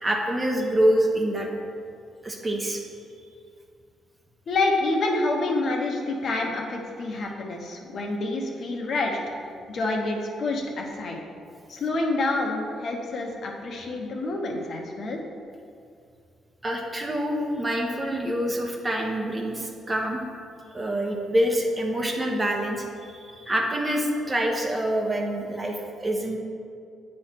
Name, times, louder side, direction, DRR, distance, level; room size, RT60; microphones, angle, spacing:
voice 1, 0.0-1.5 2.2-2.8 16.6-20.2 20.7-22.9 23.1-26.4, right 1 dB, 25° right, 0 dB, 1.0 m, -26 dB
voice 2, 4.5-9.2 9.7-11.2 11.7-15.2, left 2 dB, 60° left, 0 dB, 1.0 m, -27 dB
8.5 x 3.3 x 5.8 m, 2.3 s
cardioid pair, 90°, 0 cm